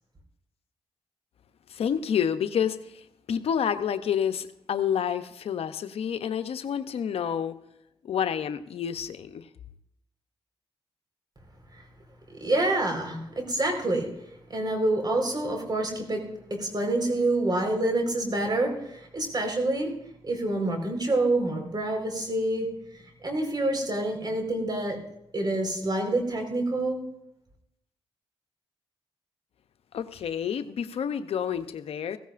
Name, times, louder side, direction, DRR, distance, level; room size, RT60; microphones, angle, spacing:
voice 1, 1.7-7.5 8.0-9.5 29.9-32.2, left 8 dB, 75° left, 0.7 m, -29 dB
voice 2, 12.3-14.1 14.5-19.9 20.2-22.7 23.2-25.0 25.3-27.0, right 2 dB, 45° right, 4.4 m, -27 dB
16.0 x 15.5 x 2.5 m
supercardioid pair, 50°, 10 cm